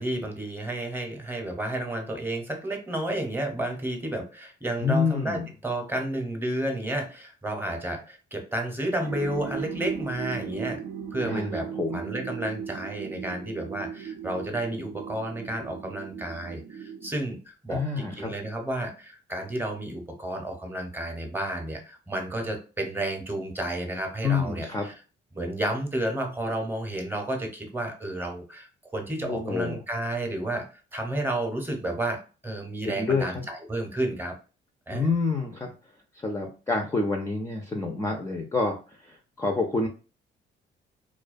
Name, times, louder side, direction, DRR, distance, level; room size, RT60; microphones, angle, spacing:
voice 1, 0.0-10.8 11.1-11.7 11.9-24.9 25.3-30.7 30.9-34.3 34.9-35.1, right 1 dB, 10° right, 3 dB, 0.7 m, -31 dB
voice 2, 4.8-5.5 11.2-12.0 17.7-18.3 24.2-24.8 29.2-29.8 32.9-33.4 34.9-35.7 36.2-39.9, left 4 dB, 15° left, 2 dB, 0.4 m, -28 dB
sound 1, 9.0-17.1, right 7 dB, 70° right, 0.4 m, -37 dB
2.3 x 2.2 x 2.4 m, 0.34 s
cardioid pair, 90°, 20 cm